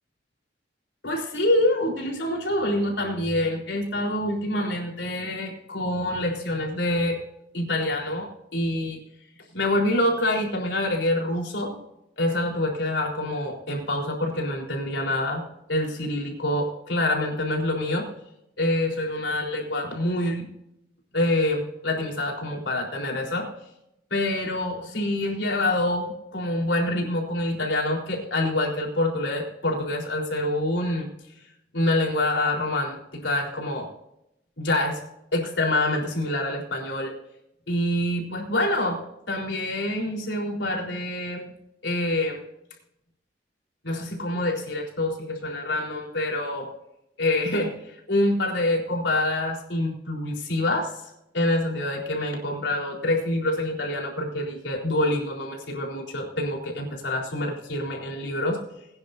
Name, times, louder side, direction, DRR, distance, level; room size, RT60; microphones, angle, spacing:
voice 1, 1.0-7.2 7.5-9.0 9.5-11.8 12.2-15.4 15.7-18.1 18.6-20.5 21.1-23.5 24.1-31.1 31.7-33.9 34.6-35.0 35.3-37.1 37.7-41.5 41.8-42.4 43.8-46.7 47.2-51.0 51.3-58.6, left 1 dB, 90° left, 0 dB, 3.9 m, -26 dB
21.5 x 10.0 x 2.6 m, 0.82 s
head